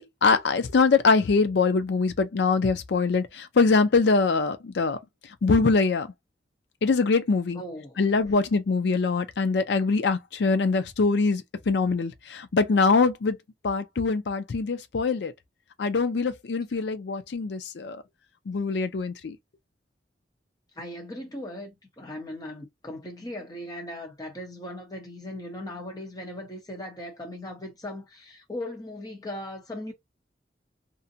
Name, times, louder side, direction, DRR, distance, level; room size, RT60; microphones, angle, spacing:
voice 1, 0.0-5.0 5.4-6.1 6.8-7.6 8.0-13.4 13.6-15.3 15.8-18.0 18.5-19.4, left 4 dB, 80° left, 0.5 m, -23 dB
voice 2, 7.5-8.0 20.7-29.9, left 1 dB, 20° left, 0.8 m, -38 dB
2.5 x 2.1 x 2.7 m
head